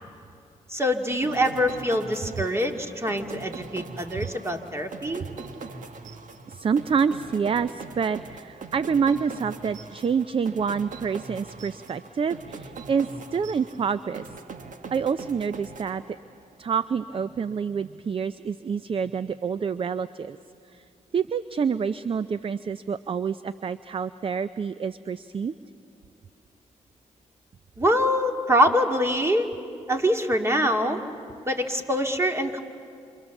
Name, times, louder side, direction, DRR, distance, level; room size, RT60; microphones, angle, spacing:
voice 1, 0.7-5.2 27.8-29.5 29.9-31.0 31.5-32.6, equal, 20° right, 4 dB, 2.3 m, -24 dB
sound 1, 1.2-16.5, right 4 dB, 65° right, 1.5 m, -42 dB
voice 2, 6.5-14.3 14.9-16.2 16.6-20.4 20.7-20.8 21.1-25.5, right 6 dB, 40° right, 14 dB, 0.5 m, -27 dB
28.0 x 26.5 x 7.2 m, 2.5 s
cardioid pair, 65°, 14 cm